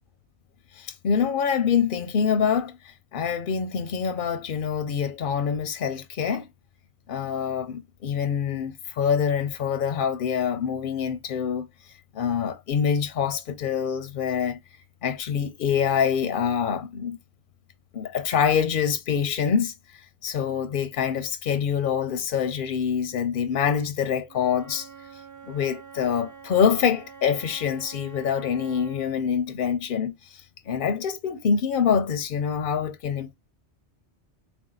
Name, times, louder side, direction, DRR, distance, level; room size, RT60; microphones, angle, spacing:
voice 1, 0.7-2.8 3.1-6.5 7.1-11.7 12.1-14.6 15.0-17.2 17.9-19.7 20.2-24.9 25.5-33.3, left 7 dB, 60° left, 0.6 m, -25 dB
Wind instrument woodwind instrument, 24.3-29.1, right 6 dB, 25° right, 0.4 m, -46 dB
3.6 x 2.6 x 3.8 m
omnidirectional pair, 1.2 m